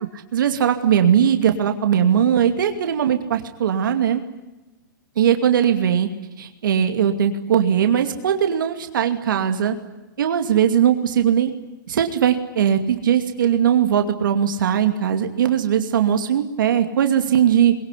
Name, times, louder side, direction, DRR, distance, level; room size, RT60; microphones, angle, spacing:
voice 1, 0.1-4.2 5.2-6.1 6.4-9.8 10.2-11.5 11.9-17.7, right 9 dB, 75° right, 6 dB, 2.5 m, -19 dB
22.5 x 22.0 x 9.9 m, 1.1 s
hypercardioid pair, 140°, 11 cm